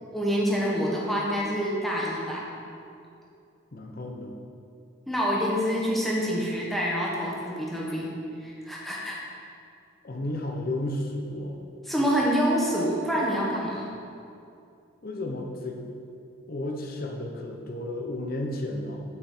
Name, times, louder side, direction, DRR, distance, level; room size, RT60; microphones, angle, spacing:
voice 1, 0.1-2.4 5.1-8.1 8.4-9.2 11.8-13.9, equal, ahead, -5 dB, 1.3 m, -27 dB
voice 2, 3.7-4.3 10.0-11.6 15.0-15.8 16.5-19.0, left 1 dB, 45° left, 1 dB, 0.8 m, -33 dB
8.3 x 5.6 x 4.4 m, 2.6 s
head